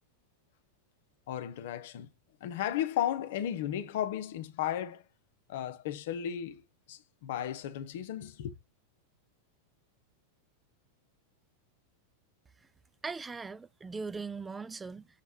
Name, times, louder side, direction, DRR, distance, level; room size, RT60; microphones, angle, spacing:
voice 1, 1.3-2.1 2.4-5.0 5.5-6.6 6.9-8.5, left 10 dB, 55° left, 0.9 m, -34 dB
voice 2, 13.0-15.1, right 4 dB, 10° right, 0.4 m, -39 dB
7.4 x 3.4 x 4.5 m
figure-of-eight pair, 90°, 0 cm